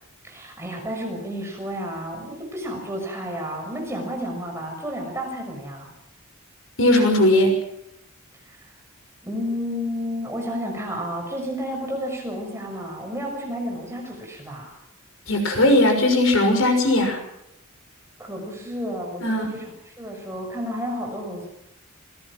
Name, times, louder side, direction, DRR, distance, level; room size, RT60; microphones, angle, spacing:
voice 1, 0.2-5.9 8.5-8.7 9.2-14.8 18.2-19.6 20.0-21.5, equal, 15° right, 1 dB, 6.2 m, -31 dB
voice 2, 6.8-7.5 15.3-17.2 19.2-19.5, left 1 dB, 65° left, 4 dB, 6.1 m, -18 dB
27.5 x 19.5 x 6.1 m, 0.81 s
head